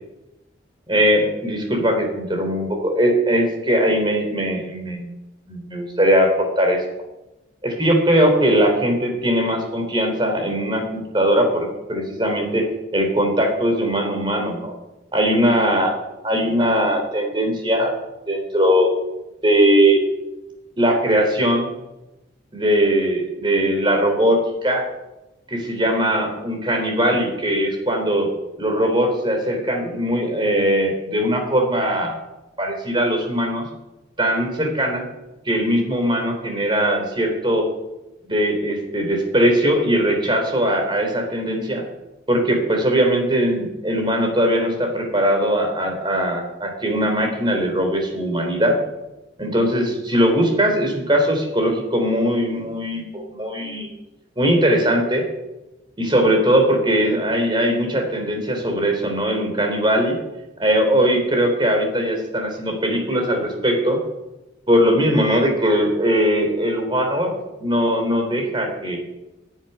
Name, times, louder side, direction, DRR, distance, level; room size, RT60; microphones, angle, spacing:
voice 1, 0.9-5.1 5.5-6.8 7.6-12.7 12.9-14.7 15.1-16.0 16.2-18.0 18.3-18.9 19.4-20.0 20.8-21.7 22.5-24.8 25.5-28.3 28.6-32.1 32.6-33.6 34.2-35.0 35.4-37.7 38.3-41.8 42.3-48.8 49.4-53.9 54.4-55.2 56.0-60.2 60.6-64.0 64.7-69.0, equal, 25° right, 3 dB, 3.4 m, -20 dB
10.5 x 10.0 x 9.8 m, 0.99 s
head